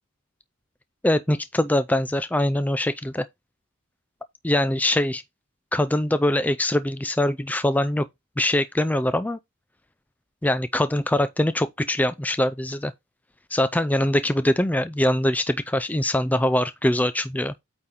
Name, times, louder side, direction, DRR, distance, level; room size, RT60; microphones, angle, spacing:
voice 1, 1.0-3.3 4.4-5.2 5.7-8.1 8.4-9.4 10.4-12.9 13.5-17.5, left 1 dB, 5° left, 0.4 m, -23 dB
8.7 x 4.2 x 3.7 m
head